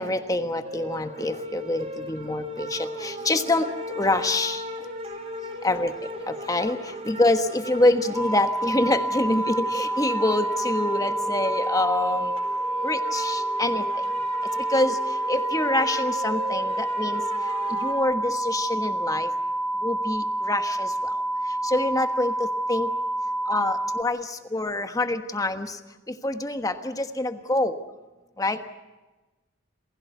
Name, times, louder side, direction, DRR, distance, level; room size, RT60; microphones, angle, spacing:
voice 1, 0.0-4.6 5.6-12.3 12.8-14.1 14.6-19.3 19.8-21.2 21.6-22.9 23.5-25.8 26.1-27.8 28.4-28.7, left 2 dB, 20° left, 8 dB, 1.3 m, -26 dB
sound 1, 0.6-17.9, equal, 35° right, 4.2 m, -36 dB
sound 2, 8.1-24.0, right 1 dB, ahead, 0.7 m, -28 dB
28.5 x 16.0 x 8.1 m, 1.2 s
head